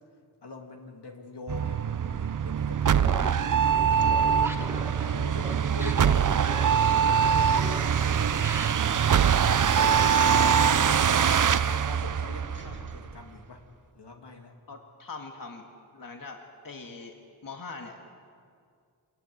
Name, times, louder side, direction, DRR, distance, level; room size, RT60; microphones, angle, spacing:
voice 1, 0.4-3.4 4.1-8.9 9.8-11.0 11.4-13.6 13.9-14.6, left 3 dB, 80° left, 2 dB, 2.7 m, -44 dB
sound 1, 1.5-13.0, right 7 dB, 50° right, 0.6 m, -23 dB
sound 2, 2.2-13.9, right 2 dB, 30° right, 2.3 m, -42 dB
voice 2, 3.0-3.5 11.5-11.6 14.7-15.7 15.9-17.1 17.4-18.1, left 4 dB, 55° left, 2 dB, 1.9 m, -42 dB
Laughter, 3.0-11.1, equal, 5° right, 1.8 m, -41 dB
25.5 x 14.5 x 9.7 m, 2.3 s
wide cardioid pair, 65°, 40 cm